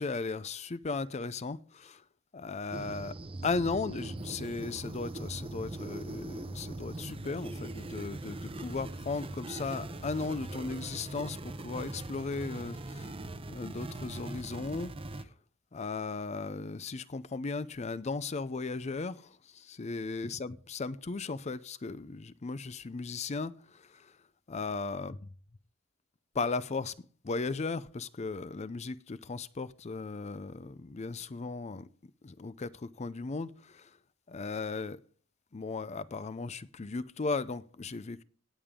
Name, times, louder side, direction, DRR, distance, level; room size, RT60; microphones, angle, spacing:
voice 1, 0.0-2.0 2.3-3.2 3.4-13.1 13.5-14.9 15.7-19.3 19.5-23.5 24.5-25.2 26.3-26.9 27.2-31.9 32.2-33.8 34.3-35.0 35.5-38.2, left 4 dB, 35° left, 0.5 m, -36 dB
sound 1, 2.7-15.2, right 2 dB, 30° right, 0.7 m, -41 dB
17.5 x 6.8 x 3.7 m
head